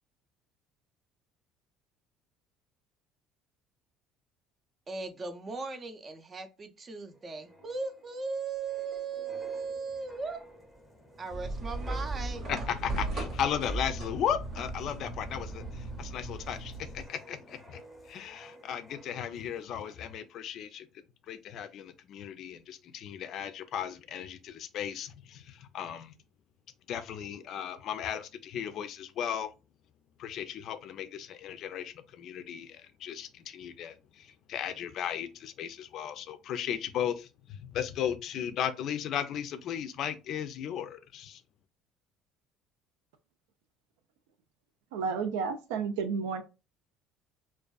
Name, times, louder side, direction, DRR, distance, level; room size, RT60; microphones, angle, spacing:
voice 1, 4.9-10.4 11.2-12.4, right 4 dB, 35° right, 0.5 m, -37 dB
sound 1, 7.1-19.5 19.8-20.1, right 1 dB, 5° right, 0.8 m, -47 dB
sound 2, 11.3-17.1, right 2 dB, 50° right, 0.9 m, -38 dB
voice 2, 12.5-17.8 18.1-20.9 21.3-26.1 26.9-29.5 30.2-41.4, left 9 dB, 60° left, 0.3 m, -36 dB
voice 3, 44.9-46.4, right 5 dB, 90° right, 0.4 m, -31 dB
2.5 x 2.3 x 2.2 m
supercardioid pair, 95°, 0 cm